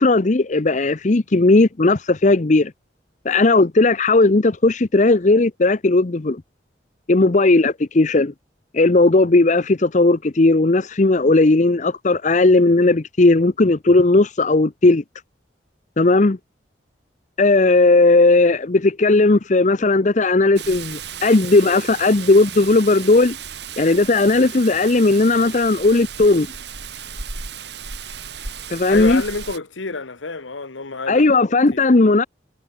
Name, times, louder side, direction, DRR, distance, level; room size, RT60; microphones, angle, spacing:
voice 1, 0.0-2.7 3.2-6.4 7.1-8.3 8.7-15.0 16.0-16.4 17.4-23.4 23.8-26.5 28.7-29.2 31.1-32.2, left 2 dB, 40° left, 0.7 m, -16 dB
Rain, 20.6-29.6, right 7 dB, 65° right, 3.7 m, -35 dB
voice 2, 28.9-31.9, left 3 dB, 90° left, 1.4 m, -29 dB
head